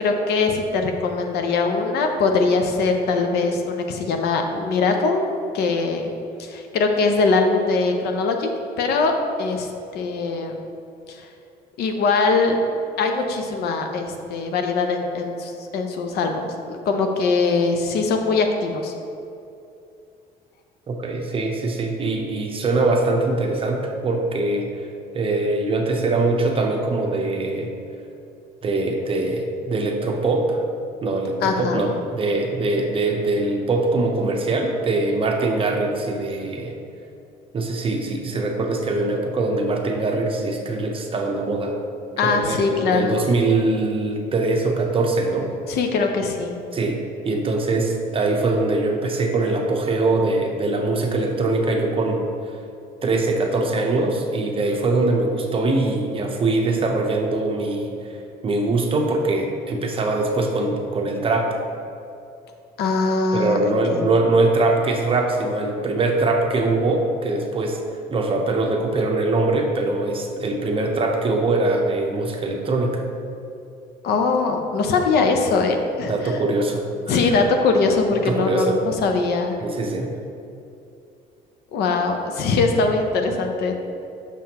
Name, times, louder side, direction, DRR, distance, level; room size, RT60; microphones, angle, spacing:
voice 1, 0.0-5.3 5.5-6.1 6.4-8.5 8.8-9.1 9.4-10.5 11.1-11.3 11.8-12.6 13.0-14.0 14.3-18.9 31.4-31.8 42.2-43.2 45.7-46.5 62.8-64.1 74.0-76.1 77.1-79.5 81.7-83.7, left 4 dB, 75° left, 4 dB, 0.6 m, -21 dB
voice 2, 20.9-24.9 25.1-27.7 28.6-30.6 31.0-36.7 37.5-41.7 42.2-45.5 46.7-52.3 53.0-58.0 58.4-61.6 63.3-73.0 76.1-77.3 78.1-78.8 79.6-80.1, right 2 dB, 30° right, 2 dB, 0.7 m, -22 dB
6.0 x 5.6 x 2.9 m, 2.6 s
cardioid pair, 110°, 17 cm